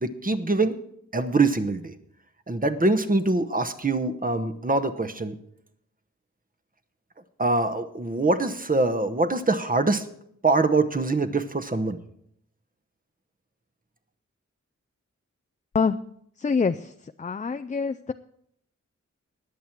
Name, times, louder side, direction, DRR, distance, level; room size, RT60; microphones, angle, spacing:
voice 1, 0.0-0.8 1.1-1.9 2.5-5.4 7.4-10.0 10.4-12.0, right 3 dB, 30° right, 9 dB, 1.0 m, -24 dB
voice 2, 16.4-16.9 17.2-18.1, left 5 dB, 25° left, 9 dB, 0.4 m, -25 dB
20.5 x 7.3 x 4.5 m, 0.71 s
wide cardioid pair, 105°, 30 cm